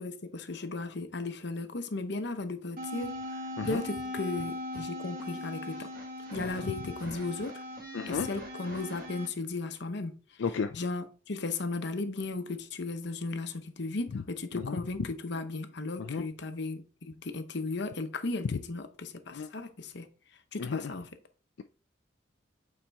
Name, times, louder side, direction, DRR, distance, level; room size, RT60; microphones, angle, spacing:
voice 1, 0.0-5.9 6.3-7.6 8.1-10.1 10.7-20.1 20.5-21.1, left 3 dB, 65° left, 0.9 m, -36 dB
sound 1, 2.8-9.3, left 1 dB, 50° right, 1.6 m, -39 dB
voice 2, 7.9-8.3 10.4-10.8 14.1-14.2 14.5-14.8 16.0-16.3 19.3-19.5 20.6-20.8, left 5 dB, 85° left, 0.4 m, -33 dB
8.7 x 4.3 x 3.5 m
head